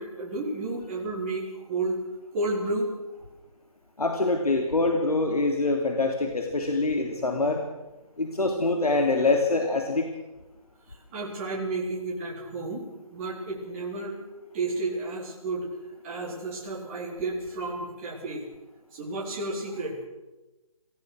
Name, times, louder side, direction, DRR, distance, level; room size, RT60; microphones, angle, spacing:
voice 1, 0.0-2.0 2.3-2.9 11.1-12.8 13.1-14.2 14.5-15.7 16.0-18.4 18.9-20.0, right 2 dB, 20° right, -4 dB, 4.3 m, -31 dB
voice 2, 4.0-7.6 8.2-10.1, left 3 dB, 90° left, 2 dB, 3.3 m, -25 dB
25.0 x 16.0 x 6.5 m, 1.1 s
figure-of-eight pair, 160°, 19 cm